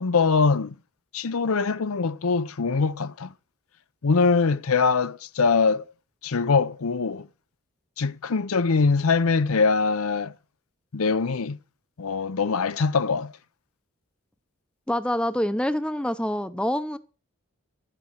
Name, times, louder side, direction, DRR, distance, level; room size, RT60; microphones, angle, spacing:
voice 1, 0.0-0.7 1.1-3.3 4.0-5.8 6.2-7.3 8.0-10.3 10.9-11.6 12.0-13.3, left 4 dB, 70° left, 0.6 m, -23 dB
voice 2, 14.9-17.0, left 1 dB, 5° left, 0.7 m, -26 dB
12.0 x 7.7 x 7.2 m
head